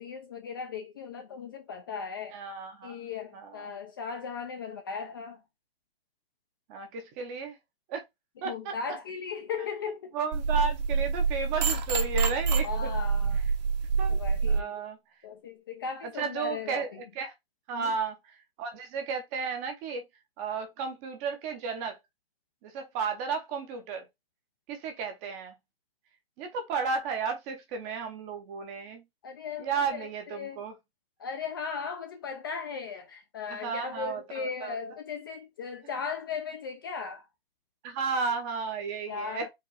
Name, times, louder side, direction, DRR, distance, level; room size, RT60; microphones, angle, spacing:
voice 1, 0.0-2.4 2.8-5.4 8.4-10.2 12.6-13.4 14.1-14.8 15.2-17.0 17.7-18.0 29.2-30.6 31.2-37.3 39.1-39.5, left 6 dB, 25° left, 0.4 m, -37 dB
voice 2, 2.3-3.0 3.3-3.7 6.7-7.6 7.9-8.0 8.4-8.8 10.1-12.9 14.0-14.2 14.5-15.0 16.2-16.9 17.1-17.3 17.7-18.2 18.6-20.1 20.4-22.0 22.6-24.0 24.7-25.6 26.4-29.0 29.6-30.7 33.5-34.7 37.8-39.5, right 5 dB, 15° right, 0.7 m, -33 dB
sound 1, 10.3-14.6, right 5 dB, 45° right, 1.0 m, -27 dB
4.8 x 2.4 x 4.6 m
hypercardioid pair, 160°, 30 cm